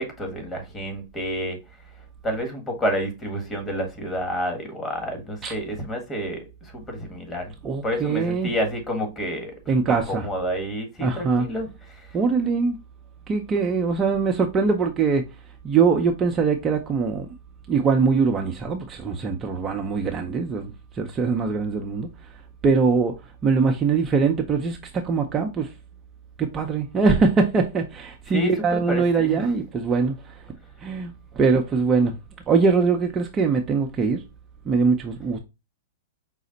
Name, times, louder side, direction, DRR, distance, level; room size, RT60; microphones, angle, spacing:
voice 1, 0.0-1.6 2.2-7.5 7.8-9.5 9.9-12.2 28.3-29.4, equal, 20° left, 1.4 m, -29 dB
voice 2, 7.6-8.5 9.7-10.3 11.0-11.5 12.1-12.8 13.3-15.2 15.6-17.3 17.7-22.1 22.6-23.1 23.4-25.7 26.4-30.4 30.8-32.2 32.5-34.2 34.7-35.4, right 5 dB, 20° right, 0.6 m, -22 dB
5.0 x 2.0 x 3.9 m
hypercardioid pair, 125°, 0 cm